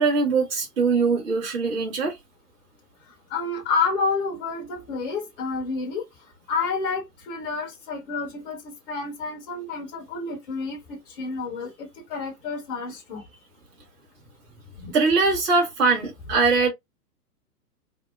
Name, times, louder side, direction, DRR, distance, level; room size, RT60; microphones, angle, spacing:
voice 1, 0.0-2.1 14.9-16.7, right 4 dB, 40° right, 1.0 m, -21 dB
voice 2, 3.0-6.0 6.5-13.2 14.8-14.9, left 4 dB, 35° left, 0.8 m, -29 dB
2.7 x 2.1 x 2.2 m
figure-of-eight pair, 115°, 48 cm